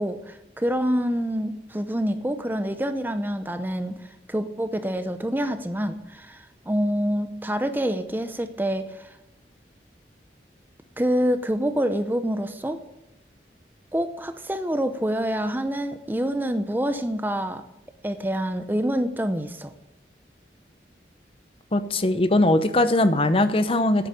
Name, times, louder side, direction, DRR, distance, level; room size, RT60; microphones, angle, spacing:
voice 1, 0.0-9.1 11.0-12.8 13.9-17.7 18.0-19.7, equal, 10° right, 9 dB, 0.7 m, -26 dB
voice 2, 21.7-24.1, left 1 dB, 30° left, 11 dB, 0.8 m, -20 dB
9.7 x 8.9 x 9.7 m, 0.96 s
head